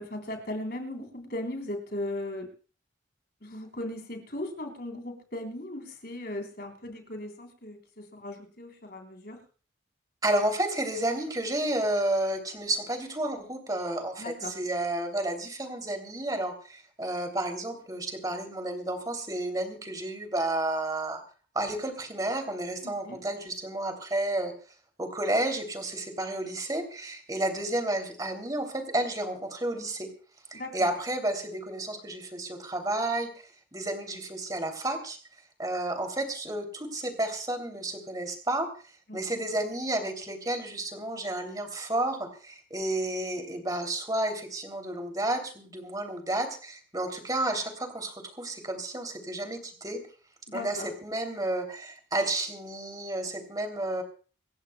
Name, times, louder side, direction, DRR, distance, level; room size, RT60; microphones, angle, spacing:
voice 1, 0.0-2.5 3.4-9.4 14.2-14.5 22.8-23.2 30.5-30.9 39.1-39.4 50.5-50.9, left 1 dB, 55° left, 4 dB, 3.8 m, -37 dB
voice 2, 10.2-21.2 21.5-24.5 25.0-30.1 30.5-33.3 33.7-35.2 35.6-38.7 39.1-50.0 50.5-54.0, right 1 dB, 20° right, 5 dB, 3.0 m, -31 dB
26.5 x 14.5 x 2.3 m, 0.39 s
head